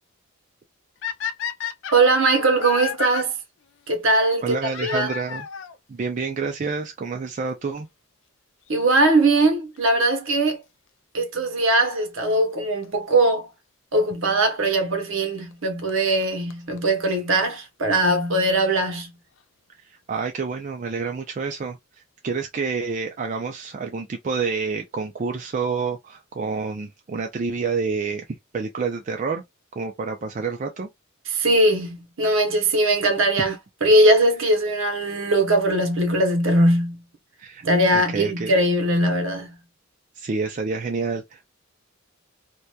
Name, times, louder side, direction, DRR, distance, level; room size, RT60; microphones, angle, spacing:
sound 1, 1.0-3.2 4.7-5.8 6.7-6.8 7.5-7.6 7.8-7.9 9.8-10.0 12.8-12.9 14.0-14.1 15.5-15.6 15.9-16.0 16.2-16.3 16.5-16.6 16.8-16.9 17.0-17.1 17.3-17.4, left 8 dB, 60° left, 0.3 m, -31 dB
voice 1, 1.9-3.3 3.9-4.6 4.8-5.1 8.7-10.6 11.1-13.5 13.9-19.1 31.3-33.5 33.8-37.0 37.6-39.5, right 1 dB, 65° right, 0.8 m, -20 dB
voice 2, 4.4-5.5 5.9-7.9 19.8-21.8 22.2-28.2 28.5-29.4 29.8-30.9 37.4-37.6 37.9-38.5 40.2-41.5, right 4 dB, 35° right, 0.3 m, -28 dB
2.8 x 2.2 x 2.2 m
head